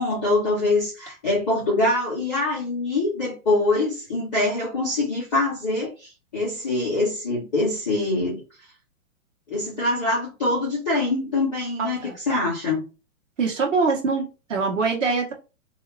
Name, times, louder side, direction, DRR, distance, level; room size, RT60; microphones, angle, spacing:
voice 1, 0.0-8.4 9.5-12.8, left 2 dB, ahead, -8 dB, 0.4 m, -24 dB
voice 2, 11.8-12.2 13.4-15.3, right 4 dB, 60° right, 1 dB, 1.4 m, -24 dB
2.8 x 2.1 x 4.0 m, 0.31 s
hypercardioid pair, 165°, 42 cm